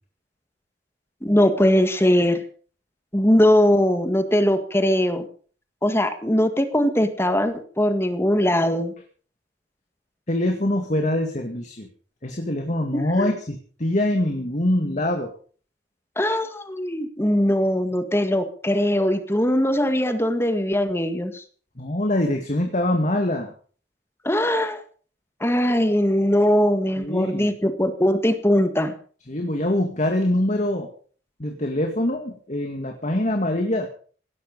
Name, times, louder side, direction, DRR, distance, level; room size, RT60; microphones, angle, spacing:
voice 1, 1.2-2.4 3.1-5.3 5.8-8.9 12.9-13.3 16.1-21.4 24.2-24.8 25.4-28.9, equal, 15° left, 8 dB, 1.8 m, -21 dB
voice 2, 10.3-11.9 12.2-15.3 21.8-23.5 27.0-27.5 29.3-30.9 31.4-33.9, left 1 dB, 40° left, 4 dB, 2.2 m, -24 dB
17.5 x 12.5 x 5.5 m, 0.43 s
head